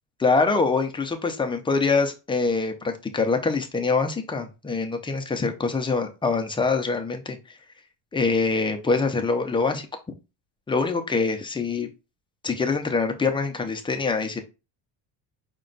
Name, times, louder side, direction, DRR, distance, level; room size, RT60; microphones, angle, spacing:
voice 1, 0.2-7.4 8.1-9.9 10.7-11.9 12.4-14.4, left 4 dB, 10° left, 4 dB, 0.4 m, -24 dB
5.1 x 2.2 x 3.8 m, 0.28 s
cardioid pair, 145°, 45 cm